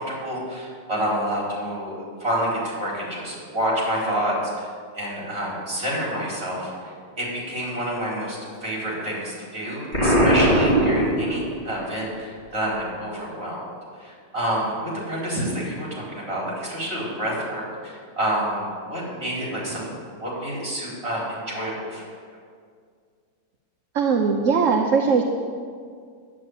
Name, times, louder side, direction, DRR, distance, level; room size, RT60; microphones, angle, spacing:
voice 1, 0.0-1.9 2.2-4.7 4.9-13.7 14.0-19.9 20.2-22.0, equal, 30° right, -5 dB, 4.7 m, -28 dB
Explosion, 9.9-11.8, right 1 dB, 20° left, 3.2 m, -19 dB
voice 2, 23.9-25.2, right 5 dB, 50° right, 2 dB, 1.0 m, -20 dB
11.0 x 8.6 x 9.4 m, 2.1 s
omnidirectional pair, 2.0 m